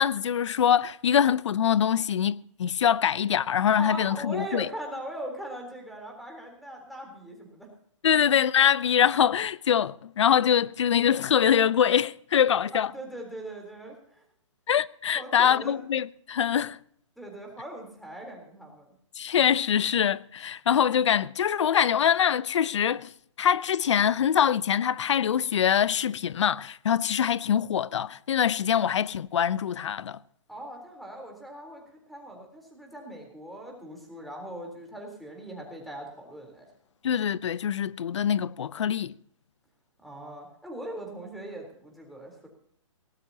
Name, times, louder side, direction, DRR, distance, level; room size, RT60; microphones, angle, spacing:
voice 1, 0.0-4.7 8.0-12.9 14.7-16.8 19.2-23.1 23.4-30.2 37.0-39.1, left 9 dB, 65° left, 0.7 m, -24 dB
voice 2, 3.8-7.7 12.7-14.2 15.1-15.7 17.2-18.9 30.5-31.8 32.1-36.6 40.0-42.5, right 1 dB, ahead, 3.7 m, -40 dB
18.5 x 18.5 x 2.9 m
hypercardioid pair, 155°, 16 cm